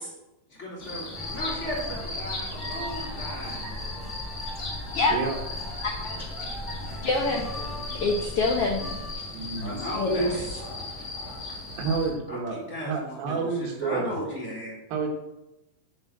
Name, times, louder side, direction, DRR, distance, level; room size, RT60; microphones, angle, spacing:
voice 1, 0.5-3.8 9.6-10.5 12.3-13.5 13.8-14.7, equal, 20° left, -3 dB, 3.1 m, -35 dB
sound 1, 0.8-12.1, left 2 dB, 55° left, 0.8 m, -37 dB
sound 2, 1.1-9.1, left 1 dB, ahead, 2.4 m, -38 dB
voice 2, 5.8-6.2 7.0-7.5 8.0-9.0 9.9-10.6, left 2 dB, 70° left, 1 dB, 1.4 m, -26 dB
voice 3, 9.3-9.9 11.8-14.2 14.9-15.1, right 5 dB, 80° right, 1 dB, 3.3 m, -29 dB
7.9 x 7.4 x 7.4 m, 0.93 s
omnidirectional pair, 4.1 m